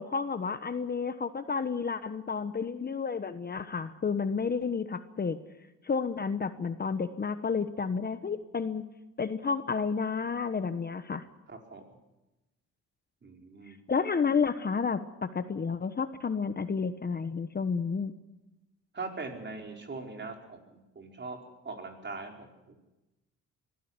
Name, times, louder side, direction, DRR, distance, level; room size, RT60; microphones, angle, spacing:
voice 1, 0.0-5.4 5.8-8.8 9.2-11.2 13.7-18.1, left 5 dB, 30° left, 11 dB, 1.1 m, -31 dB
voice 2, 11.5-11.8 13.2-13.7 18.9-21.4 21.6-22.7, right 3 dB, 35° right, 3 dB, 4.7 m, -41 dB
23.0 x 15.0 x 9.7 m, 1.0 s
cardioid pair, 90°, 30 cm